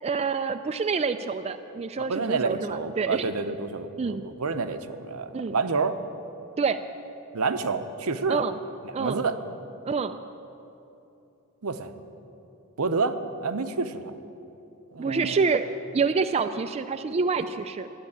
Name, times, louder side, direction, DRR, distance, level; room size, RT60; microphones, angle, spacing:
voice 1, 0.0-3.3 4.0-4.2 5.3-5.5 6.6-6.8 8.3-8.6 8.9-9.2 9.8-10.2 15.0-15.7 15.9-17.9, right 5 dB, 30° right, 8 dB, 0.4 m, -27 dB
voice 2, 2.0-6.0 7.3-8.4 8.8-9.4 11.6-11.9 12.8-13.2 13.4-14.1 14.9-15.4, right 4 dB, 75° right, 9 dB, 0.8 m, -28 dB
12.0 x 10.0 x 8.6 m, 2.9 s
head